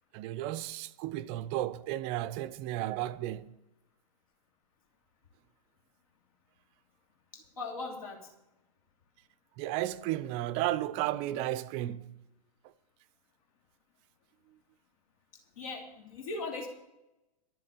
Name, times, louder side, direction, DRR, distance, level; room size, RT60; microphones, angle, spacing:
voice 1, 0.1-3.5 9.6-12.2, right 14 dB, 30° right, 0.6 m, -33 dB
voice 2, 7.3-8.3 15.6-16.7, left 3 dB, 60° left, 2.9 m, -39 dB
12.5 x 7.8 x 9.1 m
figure-of-eight pair, 110°, 20 cm